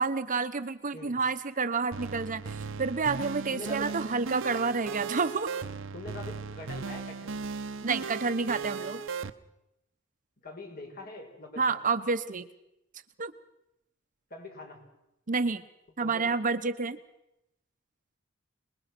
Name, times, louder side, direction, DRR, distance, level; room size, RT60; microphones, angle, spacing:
voice 1, 0.0-5.5 7.8-9.0 11.6-12.5 13.2-13.3 15.3-15.6 16.0-17.0, right 4 dB, 40° right, 10 dB, 0.9 m, -29 dB
sound 1, 1.9-9.3, right 5 dB, 65° right, 0.9 m, -37 dB
voice 2, 3.5-4.0 5.9-7.3 10.4-11.8 14.3-14.8 16.0-16.3, left 2 dB, 45° left, 3 dB, 4.7 m, -43 dB
27.5 x 21.0 x 6.1 m, 0.87 s
head